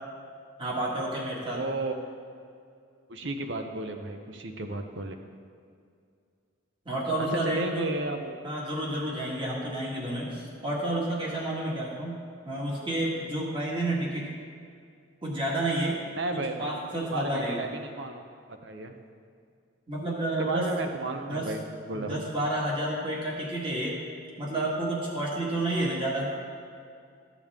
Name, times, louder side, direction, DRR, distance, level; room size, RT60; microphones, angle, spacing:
voice 1, 0.6-1.6 6.8-7.9 8.4-12.2 12.4-14.3 15.2-16.0 16.3-17.6 19.9-20.7 21.3-21.5 21.9-24.0 24.4-26.3, right 1 dB, 25° right, -4 dB, 1.7 m, -30 dB
voice 2, 1.5-2.0 3.1-5.2 7.3-8.4 9.6-9.8 16.2-19.0 20.4-22.2, right 2 dB, 55° right, 5 dB, 0.7 m, -34 dB
14.0 x 7.0 x 3.6 m, 2.3 s
head